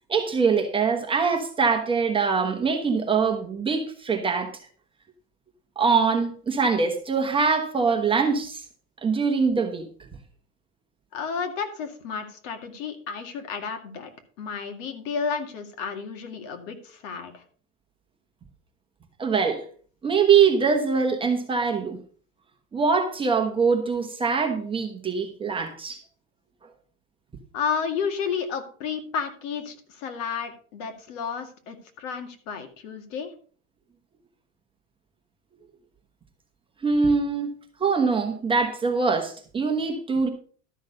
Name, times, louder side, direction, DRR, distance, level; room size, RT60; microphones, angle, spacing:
voice 1, 0.1-4.5 5.8-8.6 9.0-9.9 19.2-19.6 20.0-22.0 22.7-26.0 36.8-37.5 37.8-40.3, right 5 dB, 15° right, 1.2 m, -23 dB
voice 2, 11.1-17.4 27.5-33.3, left 6 dB, 65° left, 2.2 m, -32 dB
12.5 x 6.4 x 5.2 m
supercardioid pair, 160°, 40 cm